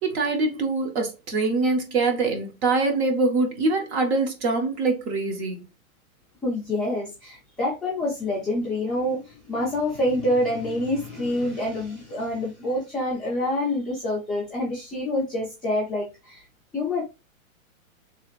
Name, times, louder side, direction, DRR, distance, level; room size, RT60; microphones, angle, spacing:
voice 1, 0.0-5.6, right 3 dB, 50° right, 1.1 m, -24 dB
voice 2, 6.4-16.4 16.7-17.0, left 1 dB, ahead, 0.4 m, -27 dB
3.2 x 2.4 x 3.1 m
hypercardioid pair, 145°, 42 cm